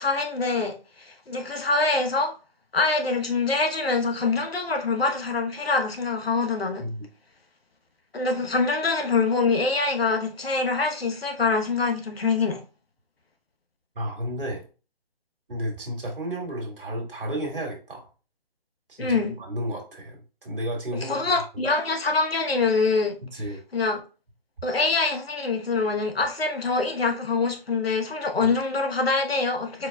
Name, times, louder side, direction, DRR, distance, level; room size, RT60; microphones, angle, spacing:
voice 1, 0.0-2.3 2.7-6.8 8.1-12.6 19.0-19.3 21.0-23.2 23.7-24.0 24.6-29.9, left 3 dB, 80° left, 1.0 m, -24 dB
voice 2, 13.9-14.6 15.5-18.1 18.9-21.2 21.5-21.6 23.2-23.6 28.4-28.5, equal, 65° right, 1.7 m, -32 dB
4.6 x 4.3 x 2.2 m
figure-of-eight pair, 145°, 29 cm